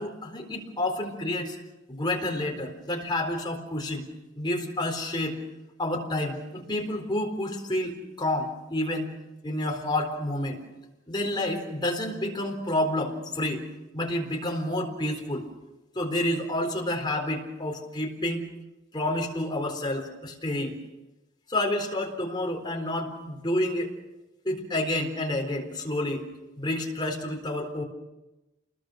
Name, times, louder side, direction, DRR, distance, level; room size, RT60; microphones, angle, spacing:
voice 1, 0.0-1.6 1.9-4.1 4.4-5.4 5.8-9.1 9.4-10.6 11.1-13.7 13.9-15.5 15.9-18.4 18.9-20.8 21.5-23.9 24.4-26.3 26.6-27.8, left 1 dB, 25° left, 1 dB, 4.1 m, -29 dB
28.5 x 21.0 x 6.5 m, 1.0 s
head